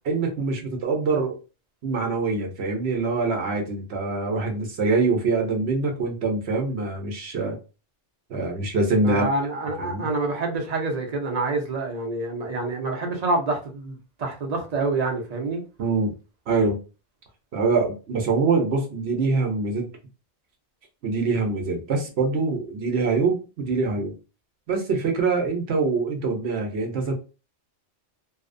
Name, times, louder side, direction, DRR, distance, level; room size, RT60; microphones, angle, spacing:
voice 1, 0.0-1.4 1.8-7.6 8.3-9.2 9.8-10.1 15.8-16.1 16.5-16.8 17.5-19.9 21.0-24.1 24.7-27.1, right 3 dB, 65° right, 0.9 m, -24 dB
voice 2, 9.0-15.6, right 3 dB, 45° right, 0.6 m, -27 dB
2.7 x 2.0 x 2.5 m
omnidirectional pair, 1.2 m